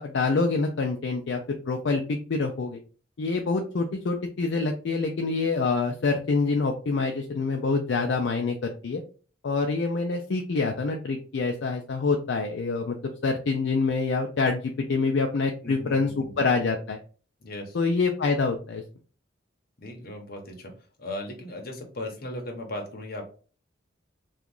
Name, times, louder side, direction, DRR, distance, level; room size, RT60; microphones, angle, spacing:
voice 1, 0.0-1.4 1.7-2.8 3.2-9.0 9.4-13.0 13.2-17.0 17.7-18.8, left 4 dB, 65° left, 3 dB, 0.4 m, -26 dB
voice 2, 15.6-16.4 17.4-17.8 19.8-23.3, left 1 dB, 50° left, 2 dB, 0.8 m, -37 dB
2.9 x 2.3 x 3.7 m, 0.38 s
head